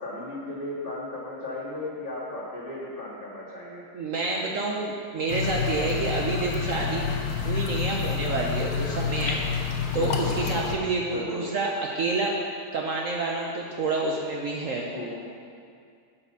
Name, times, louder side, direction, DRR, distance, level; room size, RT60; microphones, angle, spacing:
voice 1, 0.0-3.8 9.9-10.3 11.1-11.4 14.9-15.2, left 2 dB, 35° left, -6 dB, 2.3 m, -35 dB
voice 2, 3.9-7.1 7.4-12.4 12.7-14.9, right 3 dB, 60° right, -1 dB, 1.2 m, -28 dB
sound 1, 5.3-10.8, left 6 dB, 75° left, 1.4 m, -28 dB
11.0 x 5.9 x 6.8 m, 2.3 s
omnidirectional pair, 1.7 m